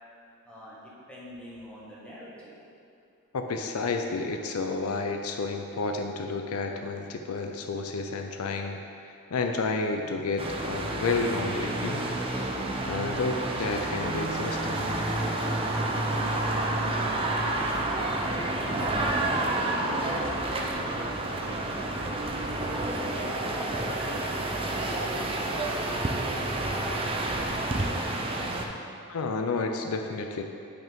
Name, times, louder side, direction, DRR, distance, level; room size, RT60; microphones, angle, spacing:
voice 1, 0.4-2.6 15.8-22.0 22.6-26.8, equal, 5° left, -8 dB, 1.5 m, -44 dB
voice 2, 3.3-8.8 9.0-12.1 12.9-14.8 29.1-30.4, left 3 dB, 80° left, 4 dB, 0.5 m, -30 dB
sound 1, 10.4-28.7, right 2 dB, 25° right, 0.5 m, -29 dB
8.3 x 5.4 x 3.6 m, 2.6 s
head